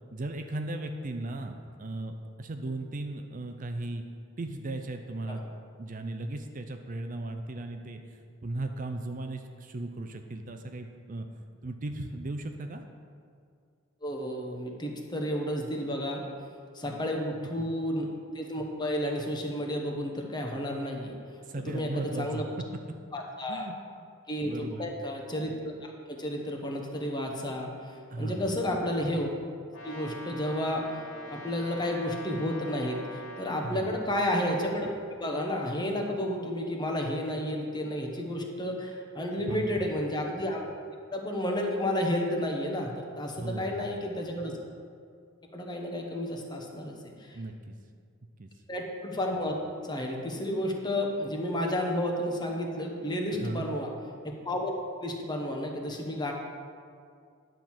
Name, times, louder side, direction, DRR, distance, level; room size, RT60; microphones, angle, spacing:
voice 1, 0.1-4.0 4.4-5.4 5.8-11.3 11.6-12.8 16.8-17.1 21.4-22.4 23.5-23.8 24.5-25.0 28.1-28.6 33.6-34.0 39.5-39.9 43.3-43.9 47.3-47.7 48.4-48.5 53.4-53.7, right 2 dB, 40° right, 6 dB, 0.5 m, -36 dB
voice 2, 14.0-16.2 16.7-18.1 18.3-21.1 21.6-22.4 23.1-23.7 24.3-29.3 29.8-30.9 31.3-34.9 35.2-40.7 41.1-44.5 45.5-47.4 48.7-49.5 49.8-53.9 54.2-54.7 55.0-56.3, left 1 dB, 20° left, 1 dB, 1.1 m, -31 dB
Brass instrument, 29.7-33.8, equal, 75° left, 2.4 m, -43 dB
10.0 x 4.6 x 7.3 m, 2.2 s
head